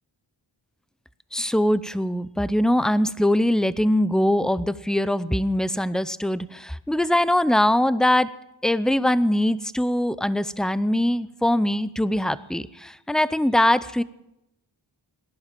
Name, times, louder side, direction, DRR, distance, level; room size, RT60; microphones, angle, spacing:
voice 1, 1.3-8.4 8.6-14.0, left 1 dB, ahead, 16 dB, 0.6 m, -22 dB
17.5 x 11.0 x 7.5 m, 0.88 s
cardioid pair, 65°, 47 cm